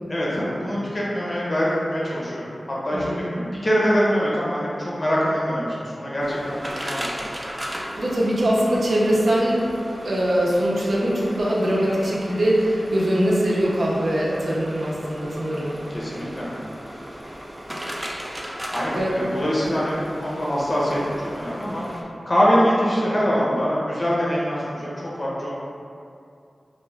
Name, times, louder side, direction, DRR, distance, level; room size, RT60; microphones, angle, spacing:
voice 1, 0.1-2.6 2.8-7.2 15.9-16.5 18.7-21.8 22.3-25.5, equal, 45° left, -6 dB, 0.7 m, -24 dB
voice 2, 2.9-3.3 8.0-9.6 10.0-15.7 18.9-19.2, equal, 70° right, -6 dB, 0.6 m, -22 dB
sound 1, 6.2-22.0, equal, 20° right, 0.4 m, -36 dB
2.4 x 2.2 x 3.2 m, 2.5 s
cardioid pair, 55°, 0 cm